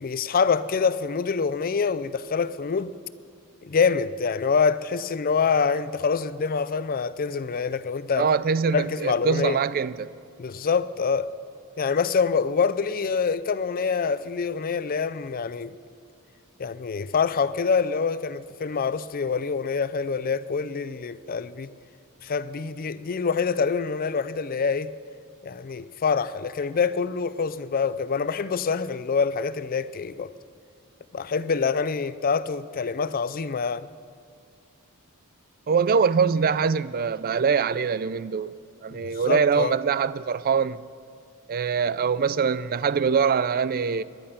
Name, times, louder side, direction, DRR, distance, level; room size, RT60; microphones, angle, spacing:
voice 1, 0.0-2.9 3.6-8.3 8.7-9.6 10.4-11.3 11.8-15.8 16.6-21.7 22.2-24.9 25.4-30.3 31.1-33.9 38.9-39.8, left 5 dB, 40° left, 0.4 m, -26 dB
voice 2, 8.1-10.1 35.7-38.5 38.8-40.8 41.5-44.0, right 6 dB, 40° right, 0.4 m, -23 dB
21.0 x 11.0 x 5.7 m
head